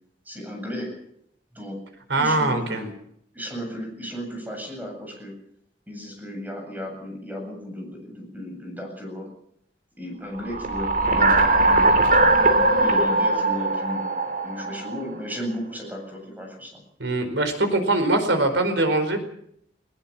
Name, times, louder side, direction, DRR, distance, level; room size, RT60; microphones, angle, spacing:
voice 1, 0.3-0.9 1.5-1.8 2.2-2.9 3.3-5.4 5.9-9.3 10.0-14.1 14.4-16.7, equal, 10° right, 2 dB, 7.9 m, -34 dB
voice 2, 2.1-2.8 17.0-19.2, right 2 dB, 85° right, 8 dB, 4.8 m, -22 dB
sound 1, 10.4-15.1, right 2 dB, 50° right, 2.9 m, -20 dB
20.5 x 19.0 x 7.4 m, 0.72 s
head